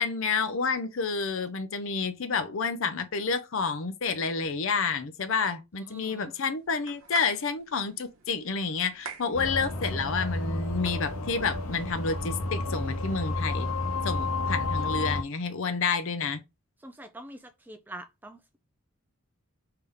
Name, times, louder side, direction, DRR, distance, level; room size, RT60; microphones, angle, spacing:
voice 1, 0.0-13.7 14.0-16.4, left 5 dB, 60° left, 0.6 m, -29 dB
voice 2, 5.9-6.3 16.8-18.6, right 1 dB, 10° right, 0.3 m, -45 dB
sound 1, 6.5-12.1, right 5 dB, 70° right, 0.9 m, -47 dB
sound 2, 9.3-15.2, left 2 dB, 80° left, 1.0 m, -31 dB
3.6 x 2.8 x 3.4 m
head